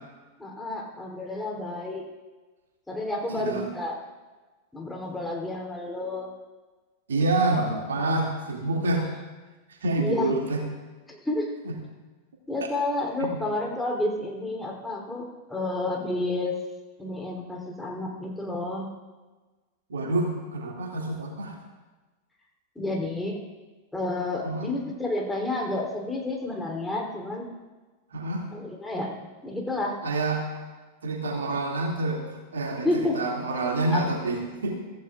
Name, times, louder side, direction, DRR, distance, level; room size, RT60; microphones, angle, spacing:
voice 1, 0.4-2.0 2.9-4.0 4.7-6.3 10.0-10.3 11.1-11.5 12.5-16.5 17.0-18.9 22.7-23.4 23.9-27.5 28.5-29.1 29.4-30.0 32.8-33.2 33.9-34.1, left 2 dB, 5° left, -1 dB, 3.4 m, -30 dB
voice 2, 7.1-9.1 9.8-10.6 13.2-13.4 19.9-21.6 24.4-24.7 28.1-28.5 30.0-30.5 31.0-32.2 32.5-32.9 33.1-34.8, right 2 dB, 65° right, 1 dB, 2.5 m, -27 dB
24.5 x 15.5 x 2.5 m, 1.3 s
figure-of-eight pair, 90°, 0 cm